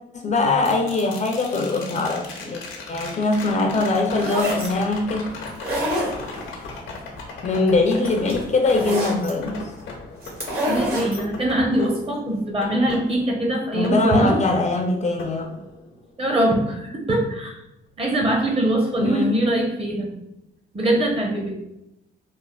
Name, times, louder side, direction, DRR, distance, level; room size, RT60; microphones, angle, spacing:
voice 1, 0.1-2.6 2.9-5.3 7.4-9.7 13.7-15.4 19.0-19.4, left 3 dB, 35° left, 3 dB, 0.4 m, -22 dB
sound 1, 0.6-14.7 15.2-16.2 18.5-18.6, left 3 dB, 85° left, 0.6 m, -38 dB
sound 2, 4.0-4.7 5.5-6.5 7.7-7.8 8.0-9.3 10.2-11.2, equal, 50° right, 1.2 m, -26 dB
voice 2, 10.6-14.4 16.2-17.6 18.0-20.1 20.7-21.6, right 1 dB, 30° right, -1 dB, 0.8 m, -22 dB
3.2 x 2.0 x 2.2 m, 0.86 s
cardioid pair, 90°, 20 cm